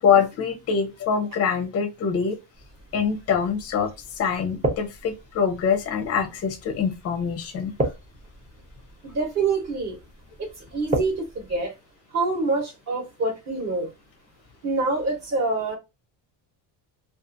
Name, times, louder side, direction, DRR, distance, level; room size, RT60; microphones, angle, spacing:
voice 1, 0.0-2.4 2.9-7.7, left 6 dB, 30° left, 0.5 m, -24 dB
sound 1, 2.5-11.7, right 1 dB, 15° right, 0.6 m, -35 dB
voice 2, 9.0-10.0 10.4-11.7 12.1-13.9 14.6-15.8, right 3 dB, 35° right, 1.0 m, -26 dB
2.6 x 2.4 x 2.5 m
cardioid pair, 155°, 49 cm